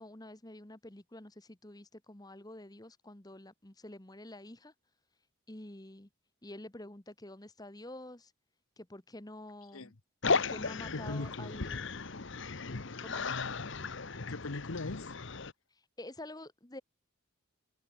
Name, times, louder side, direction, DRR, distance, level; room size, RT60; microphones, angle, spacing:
voice 1, 0.0-4.7 5.5-6.1 6.4-8.3 8.8-9.9 10.3-11.9 13.0-13.2 15.7-16.8, left 1 dB, 20° left, 1.4 m, -48 dB
sound 1, 10.2-15.5, left 4 dB, 55° left, 1.1 m, -35 dB
voice 2, 10.9-11.6 13.2-13.6 14.3-15.1, left 2 dB, 75° left, 1.2 m, -40 dB
head